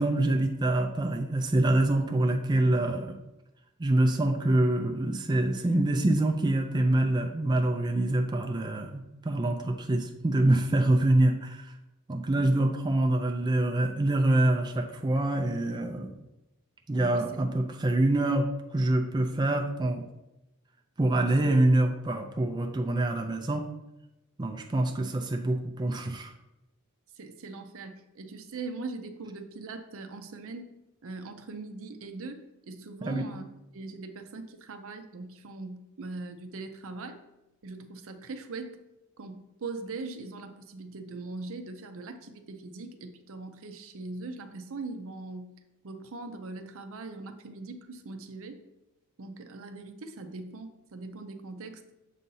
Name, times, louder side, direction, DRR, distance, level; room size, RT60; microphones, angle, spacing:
voice 1, 0.0-3.2 3.8-11.7 12.1-16.1 16.9-18.5 18.7-20.0 21.0-23.7 24.4-26.3 33.0-33.3, right 1 dB, 20° right, 3 dB, 0.4 m, -25 dB
voice 2, 17.0-17.5 21.2-21.5 27.2-30.7 31.0-33.4 33.7-37.2 37.6-38.8 39.2-45.6 45.8-48.6 49.2-51.8, right 3 dB, 65° right, 8 dB, 0.6 m, -41 dB
7.3 x 2.7 x 5.4 m, 0.94 s
head